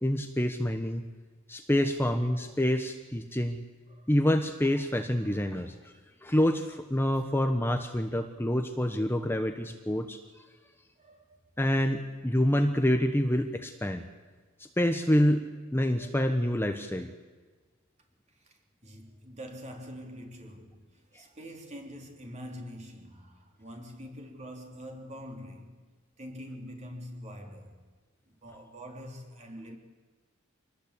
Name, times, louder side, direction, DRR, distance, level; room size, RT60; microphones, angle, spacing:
voice 1, 0.0-1.1 1.5-3.6 4.1-5.9 6.2-10.2 11.6-14.0 14.6-15.5 15.7-17.1, equal, 10° left, 1.0 m, -27 dB
voice 2, 5.2-5.8 11.0-11.4 18.3-25.8 26.2-27.9 28.3-29.8, equal, 35° right, 3.7 m, -45 dB
25.5 x 19.5 x 8.4 m
head